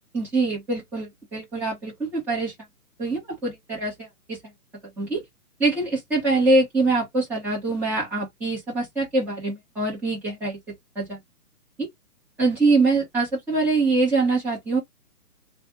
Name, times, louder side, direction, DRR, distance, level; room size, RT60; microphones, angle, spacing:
voice 1, 0.1-2.5 3.0-4.4 5.0-5.2 5.6-10.6 10.9-11.2 11.8-11.9 12.4-14.8, right 3 dB, 5° right, 1.1 m, -24 dB
3.3 x 2.4 x 3.7 m
hypercardioid pair, 165°, 46 cm